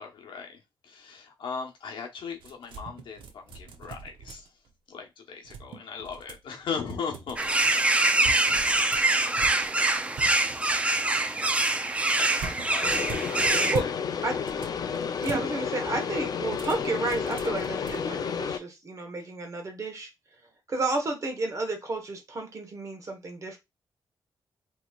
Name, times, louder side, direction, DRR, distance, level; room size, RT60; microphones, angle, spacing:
voice 1, 0.0-4.5 4.9-7.6 12.2-13.0 13.6-13.9, left 6 dB, 75° left, 0.9 m, -38 dB
sound 1, 2.4-4.7 5.4-6.5 6.9-7.7 8.2-10.9 12.4-14.0 14.3-15.5 16.5-18.0, right 6 dB, 90° right, 0.7 m, -41 dB
sound 2, 7.4-13.8, right 2 dB, 15° right, 0.4 m, -24 dB
sound 3, 12.8-18.6, left 6 dB, 50° left, 0.5 m, -31 dB
voice 2, 15.2-20.1 20.7-23.6, right 2 dB, 40° right, 1.1 m, -31 dB
4.2 x 3.0 x 2.3 m
wide cardioid pair, 145°, 8 cm